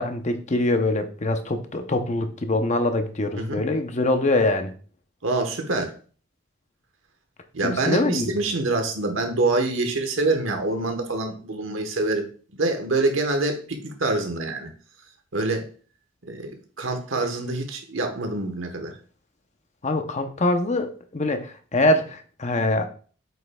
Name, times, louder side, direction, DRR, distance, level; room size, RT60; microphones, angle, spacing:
voice 1, 0.0-4.7 7.6-8.3 19.8-22.9, left 2 dB, 35° left, 8 dB, 0.7 m, -24 dB
voice 2, 5.2-6.0 7.5-14.7 15.3-15.7 16.2-19.0, right 2 dB, 75° right, 5 dB, 1.1 m, -26 dB
7.7 x 5.5 x 2.3 m, 0.40 s
head